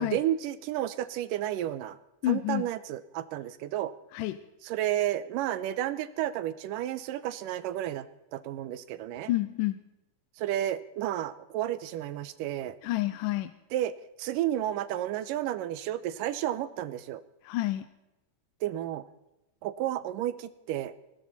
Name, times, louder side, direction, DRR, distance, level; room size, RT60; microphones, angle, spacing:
voice 1, 0.0-2.0 2.3-3.9 4.6-8.1 8.3-9.3 10.4-12.8 13.7-13.9 14.2-17.2 18.6-19.0 19.6-20.9, right 12 dB, 85° right, 14 dB, 2.4 m, -31 dB
voice 2, 2.2-2.6 4.1-4.4 9.3-9.8 12.8-13.5 17.4-17.9, left 15 dB, 80° left, 11 dB, 2.3 m, -28 dB
20.0 x 16.5 x 4.2 m, 0.93 s
omnidirectional pair, 3.8 m